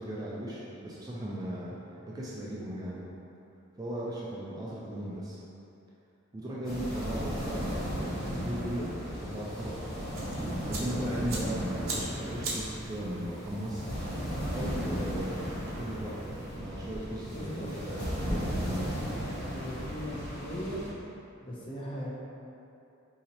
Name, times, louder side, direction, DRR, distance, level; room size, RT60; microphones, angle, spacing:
voice 1, 0.0-1.8 2.0-3.0 3.8-5.4 6.3-8.9 9.2-9.7 10.4-13.9 14.5-15.4 15.8-18.9, right 1 dB, 20° right, -6 dB, 0.3 m, -37 dB
sound 1, 6.6-20.9, equal, 85° left, 1.3 m, -35 dB
sound 2, 10.1-16.6, right 3 dB, 85° right, 0.7 m, -43 dB
voice 2, 17.3-17.7 19.5-20.8 21.4-22.1, equal, 25° left, -6 dB, 0.6 m, -38 dB
4.1 x 2.8 x 2.9 m, 2.8 s
head